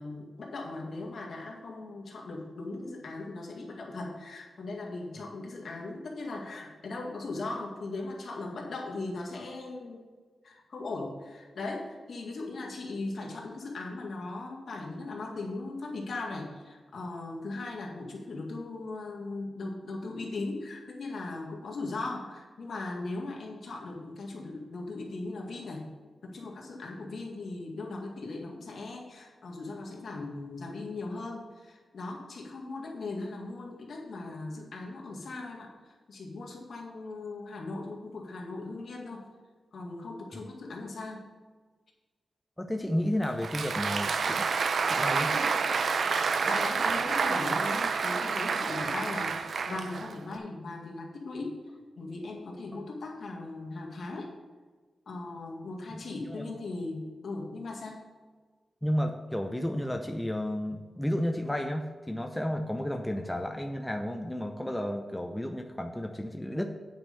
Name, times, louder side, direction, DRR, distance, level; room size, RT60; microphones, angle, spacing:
voice 1, 0.0-10.0 10.4-25.9 26.2-39.3 39.7-41.2 46.4-51.6 52.0-54.3 55.1-58.0, left 2 dB, 65° left, -1 dB, 2.0 m, -38 dB
voice 2, 42.6-44.4 44.8-45.3 55.9-56.0 56.3-56.4 58.8-66.6, equal, 5° left, 4 dB, 0.6 m, -32 dB
Applause, 43.2-50.4, right 5 dB, 60° right, 0.5 m, -28 dB
9.0 x 5.2 x 6.8 m, 1.4 s
wide cardioid pair, 120°, 0 cm